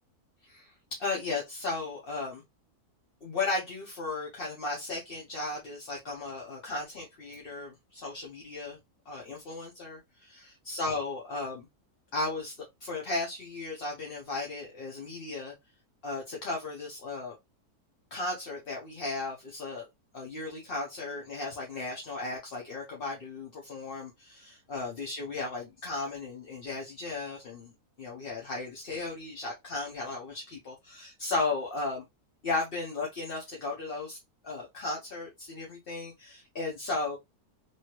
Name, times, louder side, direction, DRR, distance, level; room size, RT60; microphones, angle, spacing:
voice 1, 0.4-2.4 3.2-8.8 9.1-11.7 12.1-12.5 12.8-15.5 16.0-17.3 18.1-19.8 20.1-27.7 28.0-32.0 32.4-34.2 34.4-37.2, left 3 dB, 45° left, 0.9 m, -35 dB
3.0 x 2.7 x 2.9 m
omnidirectional pair, 1.6 m